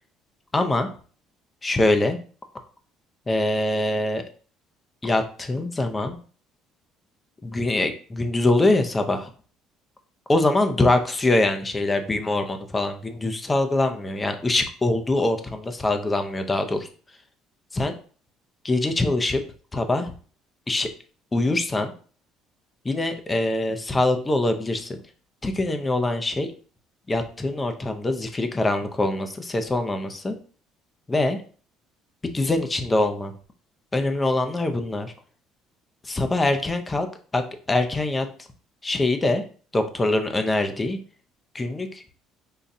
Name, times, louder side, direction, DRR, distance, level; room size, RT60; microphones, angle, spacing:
voice 1, 0.5-0.9 1.6-2.2 3.3-4.2 5.0-6.2 7.4-9.3 10.3-16.9 17.7-17.9 18.6-19.4 19.7-20.1 20.7-20.9 21.3-21.9 22.8-25.0 25.4-26.5 27.1-30.4 31.1-31.4 32.3-33.3 33.9-35.1 36.0-37.1 37.3-38.3 38.8-39.4 39.7-41.0 41.5-42.0, left 2 dB, 20° left, 6 dB, 0.6 m, -23 dB
5.5 x 2.4 x 2.7 m, 0.41 s
supercardioid pair, 85°, 0 cm